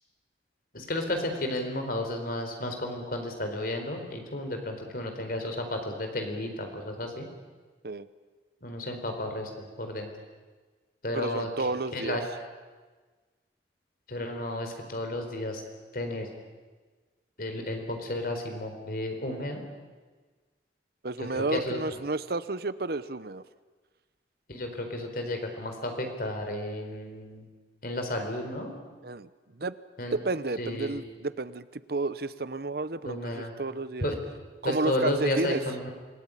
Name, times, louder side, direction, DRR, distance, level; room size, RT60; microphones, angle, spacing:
voice 1, 0.7-7.3 8.6-9.5 9.8-10.1 11.0-12.2 14.1-15.6 15.9-16.3 17.4-19.6 21.2-21.8 24.5-27.4 27.8-28.7 30.0-30.2 30.6-31.0 33.0-33.5 34.0-34.2 34.6-35.9, left 1 dB, 55° left, 4 dB, 4.4 m, -32 dB
voice 2, 11.1-12.2 21.0-23.4 29.0-29.7 30.1-34.1 34.6-35.6, right 3 dB, 60° right, 15 dB, 0.9 m, -31 dB
26.5 x 17.5 x 10.0 m, 1.4 s
head